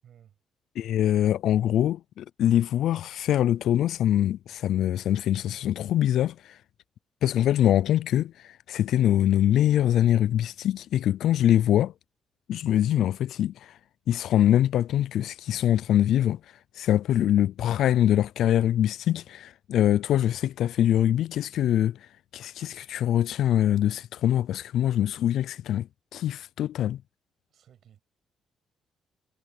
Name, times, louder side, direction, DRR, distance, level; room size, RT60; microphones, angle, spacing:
voice 1, 0.0-0.4 27.5-28.0, right 9 dB, 70° right, 7.5 m, -56 dB
voice 2, 0.8-6.6 7.2-11.9 12.5-13.8 14.1-16.4 16.7-25.9 26.1-27.0, left 11 dB, 75° left, 0.4 m, -24 dB
supercardioid pair, 60°, 0 cm